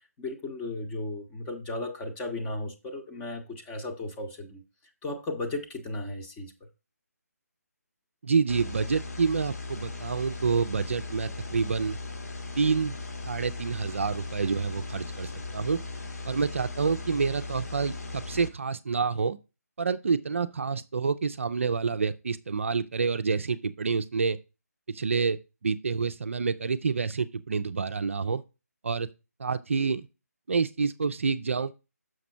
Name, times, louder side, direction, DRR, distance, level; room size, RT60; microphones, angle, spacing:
voice 1, 0.2-4.6 5.0-6.5, left 2 dB, 10° left, 0.9 m, -35 dB
voice 2, 8.2-12.0 12.6-13.0 13.2-15.8 16.2-19.4 19.8-24.4 24.9-28.4 28.8-29.1 29.4-30.1 30.5-31.7, right 5 dB, 50° right, 0.5 m, -28 dB
sound 1, 8.5-18.5, left 3 dB, 65° left, 1.6 m, -38 dB
6.4 x 5.9 x 4.3 m
figure-of-eight pair, 150°, 9 cm